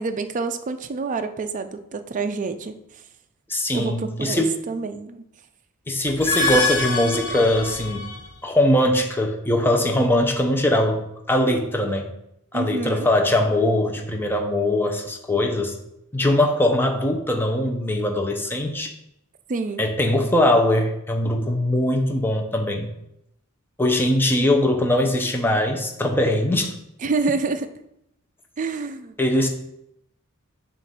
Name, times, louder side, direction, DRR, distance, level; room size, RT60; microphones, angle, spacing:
voice 1, 0.0-2.8 3.7-5.2 12.5-13.1 19.5-19.9 27.0-27.7 28.6-29.1, right 4 dB, 35° right, 9 dB, 0.4 m, -27 dB
voice 2, 3.5-4.6 5.9-8.0 8.4-12.1 12.5-15.7 16.1-18.9 19.8-22.9 23.8-26.7 29.2-29.5, left 1 dB, 10° left, 3 dB, 0.6 m, -21 dB
sound 1, 6.1-8.3, left 2 dB, 90° left, 1.2 m, -25 dB
7.2 x 2.5 x 5.2 m, 0.80 s
head